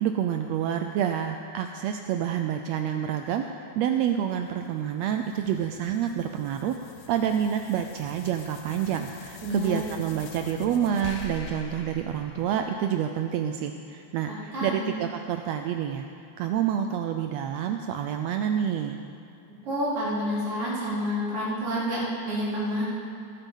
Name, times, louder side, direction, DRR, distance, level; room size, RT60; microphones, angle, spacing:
voice 1, 0.0-6.8 7.1-16.0 16.4-19.0, right 9 dB, 85° right, 6 dB, 1.5 m, -28 dB
sound 1, 4.6-13.2, left 6 dB, 70° left, 1.9 m, -46 dB
voice 2, 9.4-9.8 14.5-14.9 19.6-22.8, equal, 45° right, -9 dB, 4.8 m, -29 dB
18.5 x 8.1 x 5.4 m, 2.6 s
omnidirectional pair, 3.5 m